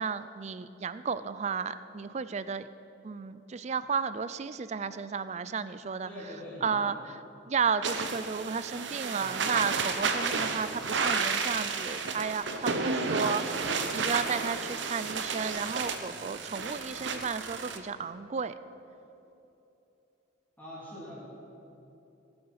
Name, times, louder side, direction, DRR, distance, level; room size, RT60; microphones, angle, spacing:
voice 1, 0.0-2.7 3.0-6.1 6.6-7.2 7.5-13.4 13.9-18.5, right 5 dB, 35° right, 14 dB, 0.4 m, -33 dB
voice 2, 6.0-7.0 20.6-21.4, equal, 10° left, -9 dB, 3.2 m, -43 dB
sound 1, 7.8-17.8, right 4 dB, 65° right, 0.9 m, -32 dB
18.0 x 7.8 x 5.6 m, 3.0 s
head